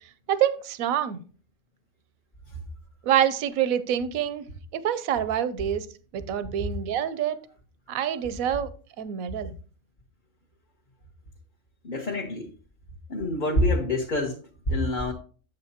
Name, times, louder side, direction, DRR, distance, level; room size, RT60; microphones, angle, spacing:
voice 1, 0.3-1.2 3.0-4.5 4.7-5.9 6.1-7.4 7.9-8.7 9.0-9.5, right 10 dB, 85° right, 1.1 m, -26 dB
voice 2, 11.8-12.5 13.1-14.4 14.7-15.1, left 1 dB, 40° left, 1.0 m, -26 dB
7.8 x 7.8 x 2.8 m
omnidirectional pair, 1.4 m